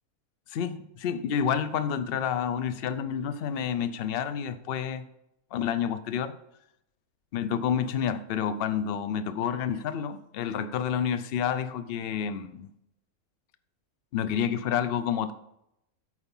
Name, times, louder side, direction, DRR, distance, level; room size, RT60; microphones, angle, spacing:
voice 1, 0.5-5.1 5.5-6.3 7.3-12.7 14.1-15.3, left 8 dB, 60° left, 0.6 m, -29 dB
8.4 x 4.9 x 5.4 m
omnidirectional pair, 1.6 m